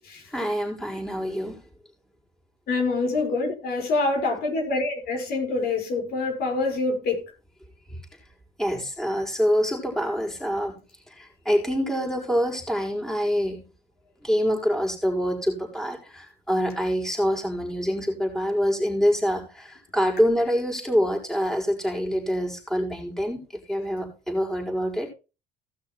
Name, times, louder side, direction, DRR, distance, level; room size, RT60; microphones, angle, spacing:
voice 1, 0.3-1.6 8.6-10.8 11.2-13.6 14.2-23.4 23.7-25.1, equal, 5° left, 5.0 m, -25 dB
voice 2, 2.7-7.2, left 3 dB, 65° left, 5.1 m, -26 dB
16.5 x 6.2 x 4.4 m
cardioid pair, 110°, 17 cm